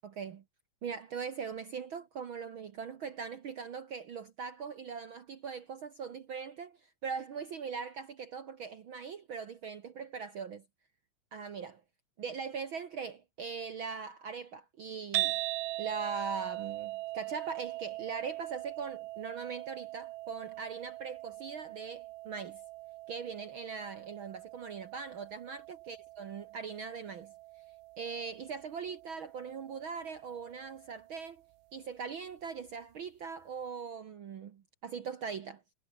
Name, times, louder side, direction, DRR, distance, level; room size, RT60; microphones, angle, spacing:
voice 1, 0.0-0.4 0.8-10.6 11.3-11.8 12.2-15.4 15.8-22.6 23.1-27.3 28.0-31.4 31.7-35.6, right 6 dB, 65° right, 1.3 m, -41 dB
sound 1, 15.1-31.4, right 19 dB, 85° right, 2.2 m, -41 dB
omnidirectional pair, 3.9 m